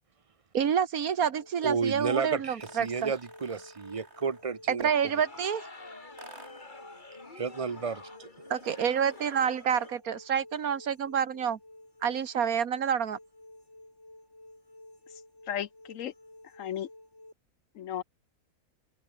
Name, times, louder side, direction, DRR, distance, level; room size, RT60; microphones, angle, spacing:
voice 1, 0.5-3.1 4.7-5.7 8.5-11.6 12.0-13.2, right 7 dB, 75° right, 1.7 m, -28 dB
sound 1, 1.4-17.3, left 1 dB, 50° left, 7.8 m, -53 dB
voice 2, 1.6-5.1 7.3-8.3, right 5 dB, 30° right, 0.7 m, -32 dB
sound 2, 2.6-4.6 6.2-6.8 8.6-9.6, right 2 dB, 45° right, 4.8 m, -53 dB
sound 3, 4.9-9.9, left 3 dB, 30° left, 2.5 m, -48 dB
voice 3, 15.5-16.1 16.6-16.9 17.8-18.0, left 10 dB, 65° left, 1.0 m, -34 dB
open air
omnidirectional pair, 1.6 m